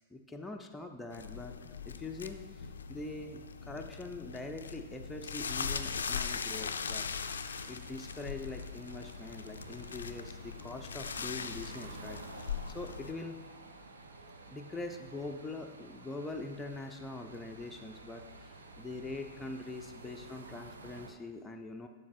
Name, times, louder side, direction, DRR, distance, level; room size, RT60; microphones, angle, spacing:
voice 1, 0.1-7.1 7.7-13.4 14.5-21.9, left 2 dB, 10° left, 2 dB, 0.5 m, -43 dB
sound 1, 1.1-13.1, left 6 dB, 80° left, 0.3 m, -40 dB
sound 2, 7.2-21.1, right 2 dB, 80° right, 0.5 m, -51 dB
7.1 x 6.6 x 2.6 m, 1.3 s
hypercardioid pair, 100°, 0 cm